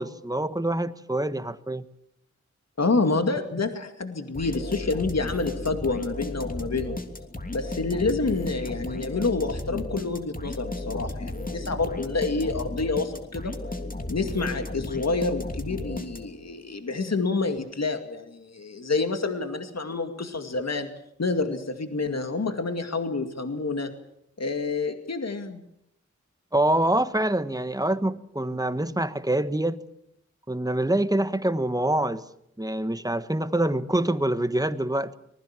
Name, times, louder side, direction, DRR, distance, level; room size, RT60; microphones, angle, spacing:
voice 1, 0.0-1.8 26.5-29.8 30.5-32.2 32.6-35.2, right 1 dB, 10° right, 11 dB, 1.5 m, -25 dB
voice 2, 2.8-7.0 7.5-13.5 14.1-20.9 21.2-23.9 24.4-25.6, left 3 dB, 60° left, 6 dB, 2.3 m, -28 dB
sound 1, 4.3-16.5, left 2 dB, 30° left, 3.1 m, -34 dB
25.0 x 20.5 x 7.5 m, 0.76 s
wide cardioid pair, 70°, 29 cm